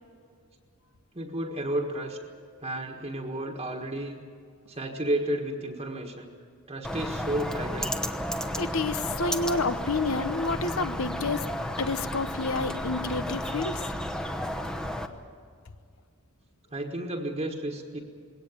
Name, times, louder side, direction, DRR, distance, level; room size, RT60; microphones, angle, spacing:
voice 1, 1.1-2.2 2.6-4.2 4.7-6.3 6.7-8.0 16.7-18.0, right 1 dB, 25° right, 1 dB, 1.5 m, -32 dB
Bird, 6.8-15.1, equal, 5° left, 1.0 m, -32 dB
voice 2, 8.6-11.4 11.8-13.9, left 3 dB, 70° left, 12 dB, 0.9 m, -29 dB
21.0 x 18.0 x 9.0 m, 2.2 s
head